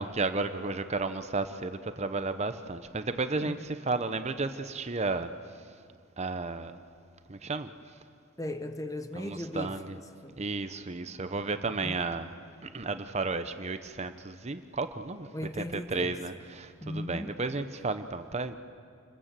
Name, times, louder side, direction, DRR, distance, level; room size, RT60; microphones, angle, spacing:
voice 1, 0.0-3.6 3.9-5.3 6.2-6.8 7.3-7.7 9.2-10.0 10.4-12.3 12.7-15.3 15.6-18.5, right 3 dB, 30° right, 0.8 m, -33 dB
voice 2, 8.4-10.5 11.7-12.0 15.3-16.2 16.8-17.4, left 1 dB, 15° left, 0.9 m, -38 dB
28.0 x 22.0 x 7.5 m
head